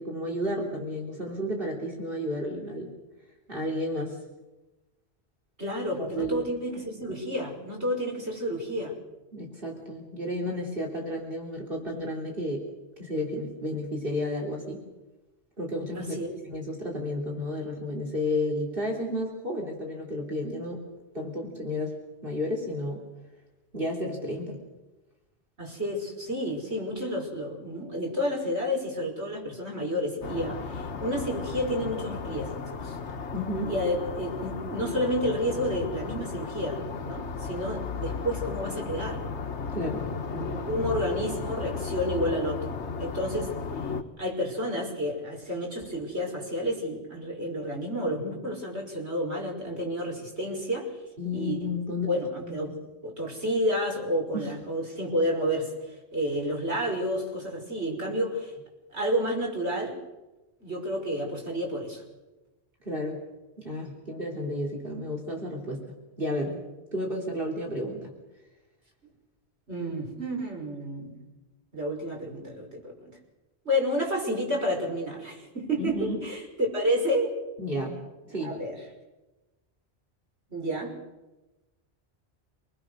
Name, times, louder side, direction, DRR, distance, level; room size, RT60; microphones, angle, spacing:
voice 1, 0.0-2.9 3.5-4.2 6.0-6.5 9.3-12.7 13.0-14.8 15.6-16.2 16.5-20.8 21.1-23.0 23.7-24.6 33.3-33.7 39.7-40.0 51.2-52.1 52.4-52.6 54.3-54.5 62.8-63.2 63.6-65.8 66.2-66.6 66.9-68.1 75.8-76.2 77.6-78.5, left 1 dB, 55° right, 0 dB, 3.9 m, -32 dB
voice 2, 5.6-8.9 15.9-16.3 25.6-33.0 33.7-39.2 40.3-42.7 43.0-43.5 43.8-43.9 44.2-50.9 51.3-51.7 52.1-52.7 53.0-58.6 58.9-59.9 60.6-62.0 69.7-71.2 71.7-73.1 73.6-77.3 78.4-78.8 80.5-80.9, equal, 70° right, 0 dB, 6.1 m, -30 dB
sound 1, 30.2-44.0, left 5 dB, 80° left, 1.5 m, -35 dB
27.5 x 20.5 x 6.5 m, 1.1 s
omnidirectional pair, 1.2 m